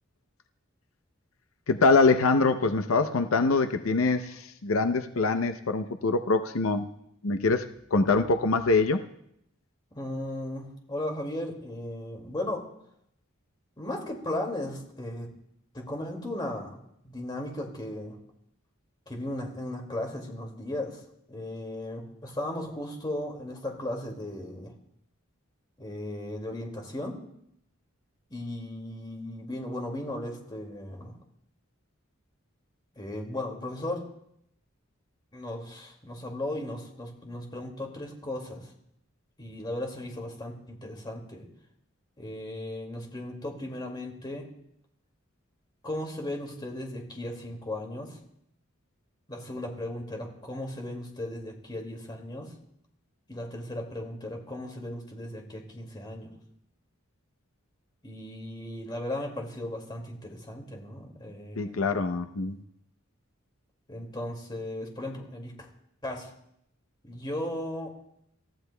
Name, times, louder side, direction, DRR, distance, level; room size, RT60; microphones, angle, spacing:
voice 1, 1.7-6.8 7.2-9.0 61.6-62.6, left 3 dB, 90° left, 8 dB, 0.6 m, -24 dB
voice 2, 9.9-12.6 13.8-15.3 15.7-16.8 17.0-18.2 19.1-21.0 21.3-24.7 25.8-27.2 28.3-31.2 33.0-34.1 35.3-38.7 39.4-41.5 42.2-44.5 45.8-48.2 49.3-52.5 53.3-56.4 58.0-61.9 63.9-65.7 66.0-66.3 67.0-67.9, left 1 dB, 20° left, 1 dB, 2.2 m, -36 dB
27.5 x 14.0 x 2.2 m, 0.74 s
head